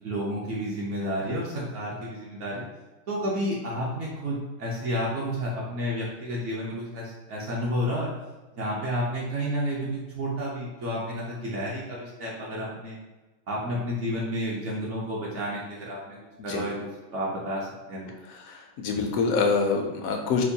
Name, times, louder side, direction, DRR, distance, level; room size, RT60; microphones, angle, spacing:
voice 1, 0.0-2.7 3.1-8.1 8.5-13.0 13.5-16.2 16.4-18.1, equal, 65° right, -5 dB, 1.0 m, -31 dB
voice 2, 18.3-20.4, left 4 dB, 80° left, 2 dB, 1.0 m, -26 dB
4.4 x 2.2 x 2.7 m, 1.2 s
omnidirectional pair, 1.4 m